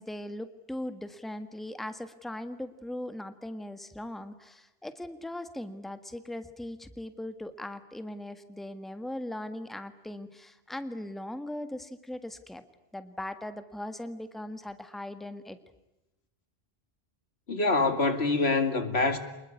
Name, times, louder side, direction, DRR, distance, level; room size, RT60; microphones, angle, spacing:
voice 1, 0.0-12.6 12.9-15.6, left 1 dB, ahead, 1.6 m, -39 dB
voice 2, 17.5-19.2, left 3 dB, 90° left, 2.6 m, -25 dB
27.0 x 21.0 x 9.8 m
omnidirectional pair, 1.0 m